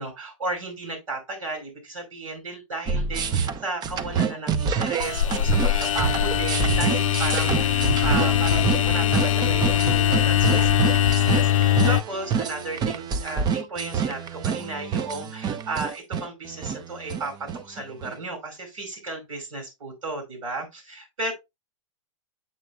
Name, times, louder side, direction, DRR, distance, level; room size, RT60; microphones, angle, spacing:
voice 1, 0.0-21.3, right 3 dB, 80° right, 5.2 m, -34 dB
sound 1, 2.9-18.2, right 6 dB, 25° right, 0.6 m, -27 dB
sound 2, 5.0-12.0, left 10 dB, 75° left, 0.5 m, -21 dB
7.5 x 6.7 x 2.3 m
hypercardioid pair, 115°, 17 cm